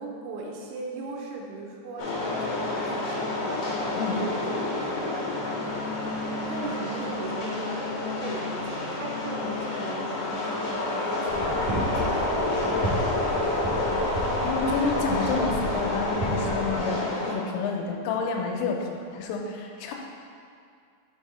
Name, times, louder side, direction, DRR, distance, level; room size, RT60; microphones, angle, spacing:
voice 1, 0.0-3.4 3.8-4.2 4.5-13.6, right 3 dB, 85° right, -1 dB, 3.1 m, -39 dB
sound 1, 2.0-17.3, left 2 dB, 65° left, 1.8 m, -29 dB
sound 2, 11.3-16.8, right 1 dB, 65° right, 2.0 m, -33 dB
voice 2, 14.4-19.9, left 4 dB, 85° left, 1 dB, 3.2 m, -29 dB
7.0 x 4.6 x 4.2 m, 2.3 s
omnidirectional pair, 5.8 m